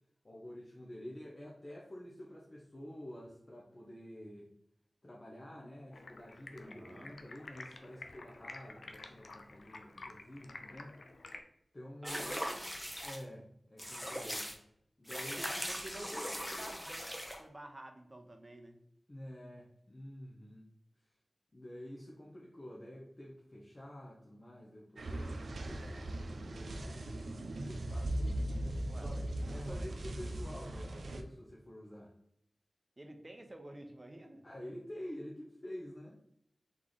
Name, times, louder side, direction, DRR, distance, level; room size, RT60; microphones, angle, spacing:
voice 1, 0.2-4.5 5.0-11.0 11.7-12.4 13.0-14.5 15.0-15.5 19.1-20.7 21.5-32.1 34.4-36.1, left 1 dB, 40° left, -3 dB, 0.8 m, -49 dB
Stream, 5.9-11.4, left 3 dB, 85° left, 0.4 m, -51 dB
voice 2, 6.6-7.1 12.0-12.6 15.1-18.8 28.8-30.2 33.0-34.4, right 1 dB, 35° right, 5 dB, 0.8 m, -51 dB
sound 1, 12.0-13.2 13.8-14.6 15.1-17.4, equal, 10° left, 0.8 m, -40 dB
sound 2, 25.0-31.2, right 1 dB, 85° right, 0.4 m, -39 dB
3.7 x 3.2 x 3.9 m, 0.74 s
cardioid pair, 45°, 0 cm